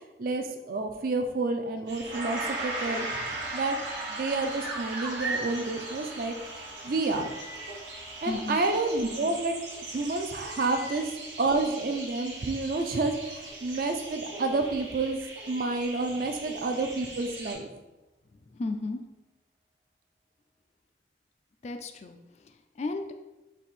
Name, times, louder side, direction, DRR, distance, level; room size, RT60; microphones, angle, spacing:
voice 1, 0.2-3.2 3.5-3.8 4.1-6.4 6.8-7.3 8.2-9.5 9.9-11.1 11.4-15.2 15.5-17.7, right 3 dB, 50° right, 5 dB, 0.4 m, -29 dB
sound 1, 1.9-17.5, right 2 dB, 90° right, 1.2 m, -41 dB
Gong, 2.0-11.4, right 2 dB, 70° right, 1.0 m, -39 dB
voice 2, 8.2-8.6 16.1-16.2 18.3-19.0 21.6-23.1, left 3 dB, 40° left, 6 dB, 0.3 m, -35 dB
4.1 x 2.6 x 4.2 m, 1.0 s
head